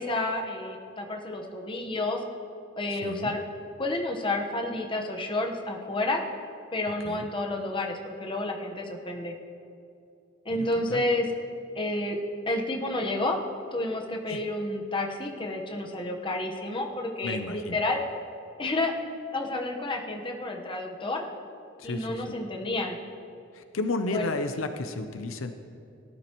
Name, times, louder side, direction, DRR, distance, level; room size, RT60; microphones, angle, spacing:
voice 1, 0.0-2.2 2.8-3.4 3.8-6.2 6.7-9.3 10.4-11.3 11.7-12.2 12.5-13.4 13.7-18.0 18.6-19.0 19.3-21.2 21.8-23.0 24.1-24.3, left 2 dB, 25° left, 1 dB, 1.1 m, -30 dB
voice 2, 3.0-3.3 7.0-7.3 10.5-11.0 14.3-14.4 17.2-17.8 21.8-22.4 23.5-25.5, left 3 dB, 90° left, 8 dB, 0.7 m, -33 dB
18.0 x 12.0 x 3.1 m, 2.5 s
head